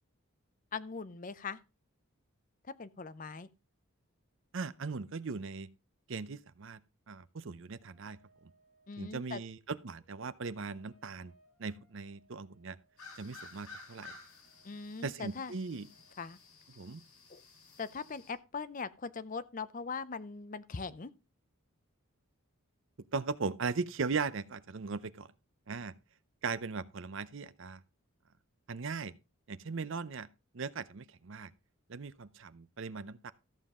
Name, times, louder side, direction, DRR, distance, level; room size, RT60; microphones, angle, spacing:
voice 1, 0.7-1.6 2.6-3.5 8.9-9.4 14.6-15.5 16.2-16.4 17.3-17.4 17.8-21.1, left 5 dB, 35° left, 0.5 m, -40 dB
voice 2, 4.5-5.7 6.1-6.8 7.1-8.2 9.0-11.3 11.6-12.8 13.2-14.1 15.0-15.9 16.7-17.0 23.1-25.3 25.7-25.9 26.4-27.8 28.7-29.1 29.5-30.3 30.5-31.5 31.9-33.3, right 4 dB, 60° right, 0.6 m, -38 dB
sound 1, 7.8-16.2, right 2 dB, 5° left, 4.2 m, -71 dB
sound 2, 13.0-18.3, left 4 dB, 85° left, 4.2 m, -54 dB
13.5 x 7.3 x 3.6 m
head